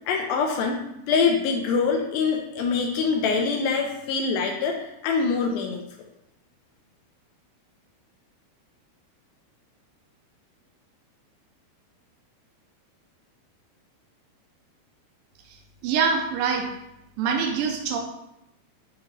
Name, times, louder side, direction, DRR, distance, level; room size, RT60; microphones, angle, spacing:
voice 1, 0.1-5.8, left 5 dB, 80° left, 2 dB, 2.2 m, -24 dB
voice 2, 15.8-16.7 17.2-18.0, right 6 dB, 80° right, 3 dB, 2.0 m, -24 dB
8.8 x 3.1 x 3.7 m, 0.85 s
omnidirectional pair, 4.7 m